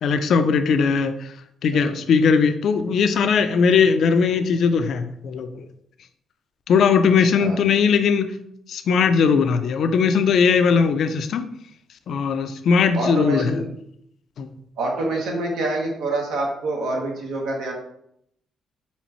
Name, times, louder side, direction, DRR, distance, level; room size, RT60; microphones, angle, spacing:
voice 1, 0.0-1.3 1.6-5.6 6.7-8.3 8.7-11.5 12.1-13.6 14.4-14.5, left 5 dB, 65° left, 9 dB, 0.4 m, -19 dB
voice 2, 7.2-7.6 12.9-13.7 14.8-17.7, right 2 dB, 85° right, -1 dB, 1.2 m, -26 dB
4.2 x 3.7 x 3.0 m, 0.74 s
cardioid pair, 90°, 0 cm